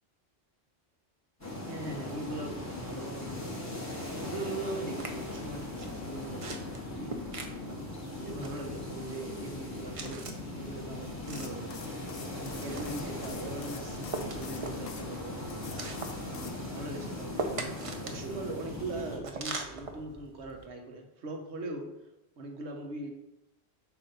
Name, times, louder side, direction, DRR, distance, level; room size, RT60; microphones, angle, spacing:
sound 1, 1.4-19.2, left 2 dB, 15° left, 1.4 m, -39 dB
voice 1, 1.7-7.3 7.6-11.9 12.3-17.5 18.0-21.9 22.4-23.1, right 2 dB, 85° right, 3 dB, 1.3 m, -41 dB
sound 2, 5.0-20.6, right 3 dB, 40° right, 0.6 m, -43 dB
sound 3, 11.2-15.0 15.5-16.6, left 6 dB, 60° left, 0.8 m, -48 dB
7.2 x 2.6 x 5.5 m, 0.91 s
omnidirectional pair, 1.1 m